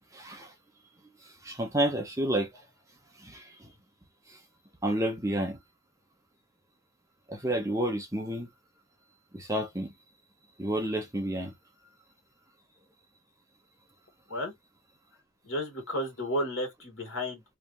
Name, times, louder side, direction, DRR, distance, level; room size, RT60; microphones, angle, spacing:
voice 1, 0.1-0.5 1.4-2.5 3.2-3.7 4.8-5.6 7.3-8.5 9.3-9.9 10.6-11.5, right 1 dB, 15° right, 0.9 m, -30 dB
voice 2, 15.4-17.4, equal, 65° left, 2.3 m, -32 dB
3.5 x 3.4 x 2.6 m
head